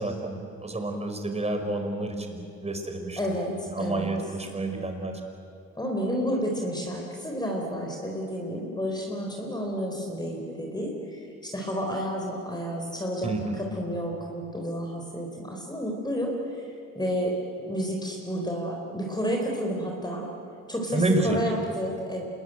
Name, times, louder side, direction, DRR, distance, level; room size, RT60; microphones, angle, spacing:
voice 1, 0.0-3.2 3.7-5.1 13.2-13.6 20.9-21.4, right 2 dB, 20° right, 5 dB, 4.6 m, -29 dB
voice 2, 3.2-4.1 5.7-17.4 17.6-20.3 20.7-22.2, equal, 15° left, 0 dB, 4.1 m, -31 dB
26.5 x 21.0 x 9.1 m, 2.6 s
cardioid pair, 90°, 30 cm